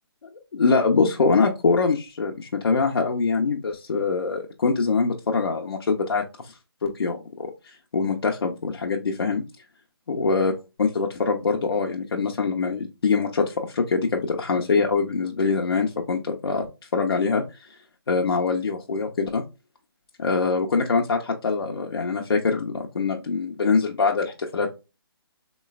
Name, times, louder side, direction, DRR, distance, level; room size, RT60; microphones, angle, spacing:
voice 1, 0.5-6.5 6.8-7.5 7.9-9.4 10.1-10.5 10.8-16.7 16.9-17.4 18.1-19.4 20.2-24.7, left 4 dB, 75° left, 0 dB, 0.7 m, -23 dB
3.8 x 3.1 x 2.3 m, 0.27 s
hypercardioid pair, 170°, 13 cm